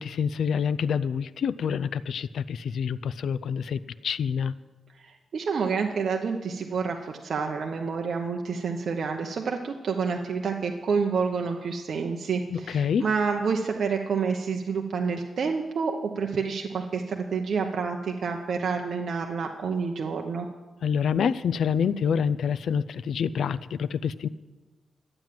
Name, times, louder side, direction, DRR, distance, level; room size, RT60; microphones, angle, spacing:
voice 1, 0.0-4.5 12.5-13.1 20.8-24.3, left 7 dB, 75° left, 16 dB, 0.4 m, -27 dB
voice 2, 5.0-20.5, right 5 dB, 65° right, 2 dB, 0.9 m, -28 dB
12.0 x 8.9 x 7.6 m, 1.2 s
cardioid pair, 100°, 0 cm